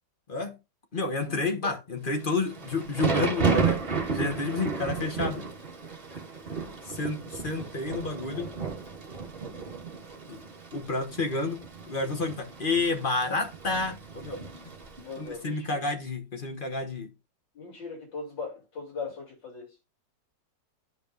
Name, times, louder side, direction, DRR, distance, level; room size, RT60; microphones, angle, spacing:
voice 1, 0.9-3.8 4.1-5.5 6.8-8.5 10.3-14.5 15.2-17.1, left 3 dB, 35° left, 1.2 m, -30 dB
Thunder / Rain, 2.3-15.3, right 5 dB, 35° right, 1.4 m, -33 dB
voice 2, 15.0-15.8 17.6-19.7, left 4 dB, 80° left, 3.7 m, -39 dB
13.5 x 5.1 x 2.5 m
omnidirectional pair, 1.9 m